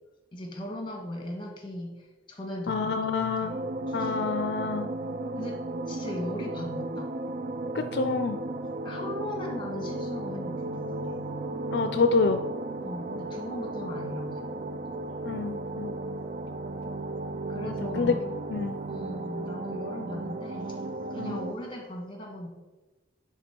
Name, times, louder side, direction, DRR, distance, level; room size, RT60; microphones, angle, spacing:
voice 1, 0.3-3.5 3.9-4.1 5.3-7.1 8.8-11.2 12.8-15.1 17.5-18.2 18.9-20.8 21.1-22.5, left 1 dB, 30° left, 2 dB, 1.5 m, -38 dB
voice 2, 2.7-3.6 3.9-4.9 7.7-8.4 11.7-12.4 15.2-15.9 17.6-18.1 18.5-18.8 21.2-21.4, left 4 dB, 65° left, 8 dB, 0.4 m, -27 dB
sound 1, 3.5-21.5, right 2 dB, 50° right, 0.4 m, -35 dB
10.0 x 3.8 x 4.5 m, 1.2 s
head